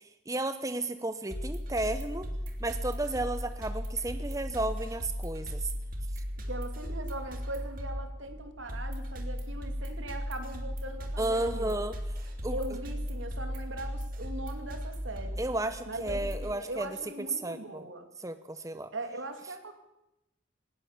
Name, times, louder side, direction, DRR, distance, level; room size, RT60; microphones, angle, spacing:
voice 1, 0.0-2.3 2.6-5.6 11.2-11.9 12.4-12.6 15.4-16.9 17.4-17.9 18.2-18.9, right 2 dB, 15° right, 10 dB, 0.8 m, -33 dB
sound 1, 1.3-16.5, equal, 45° right, 3.0 m, -36 dB
voice 2, 6.5-11.8 12.5-15.4 15.9-18.1 18.9-19.7, right 1 dB, 80° right, 7 dB, 2.8 m, -40 dB
19.5 x 18.5 x 7.4 m, 0.91 s
head